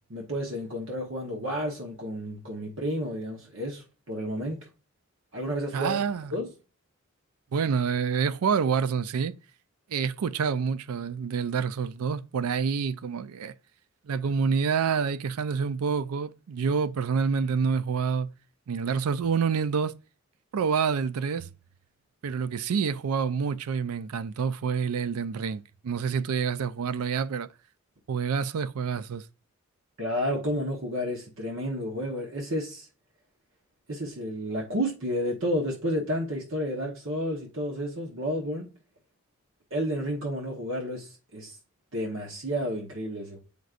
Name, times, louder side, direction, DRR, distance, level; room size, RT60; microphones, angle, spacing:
voice 1, 0.1-4.7 5.3-6.0 6.3-6.5 30.0-32.9 33.9-38.7 39.7-41.6 41.9-43.4, equal, 60° right, 1.1 m, -31 dB
voice 2, 5.7-6.3 7.5-9.4 9.9-13.5 14.1-18.3 18.7-19.9 20.5-21.5 22.2-27.5 28.1-29.2, right 6 dB, 85° right, 0.4 m, -27 dB
7.8 x 5.2 x 2.4 m
head